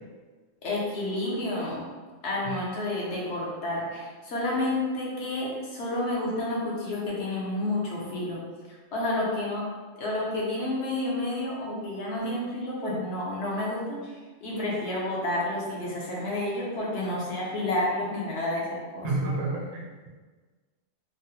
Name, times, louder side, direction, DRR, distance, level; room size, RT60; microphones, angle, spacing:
voice 1, 0.6-1.9 2.2-8.4 8.9-9.7 10.0-14.1 14.4-19.1, left 1 dB, 65° left, -4 dB, 1.0 m, -30 dB
voice 2, 19.0-20.1, right 2 dB, 45° right, -4 dB, 0.6 m, -30 dB
3.7 x 2.0 x 2.7 m, 1.4 s
omnidirectional pair, 1.3 m